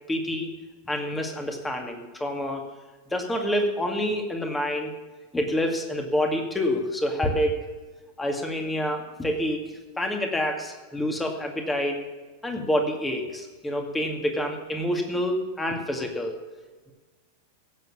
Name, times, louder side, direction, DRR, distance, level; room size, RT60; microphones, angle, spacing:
voice 1, 0.1-0.5 0.8-2.6 3.1-4.9 5.3-7.6 8.2-9.6 10.0-12.0 12.4-16.4, equal, 10° left, 3 dB, 2.3 m, -27 dB
16.5 x 7.9 x 7.2 m, 1.3 s
figure-of-eight pair, 90°, 0 cm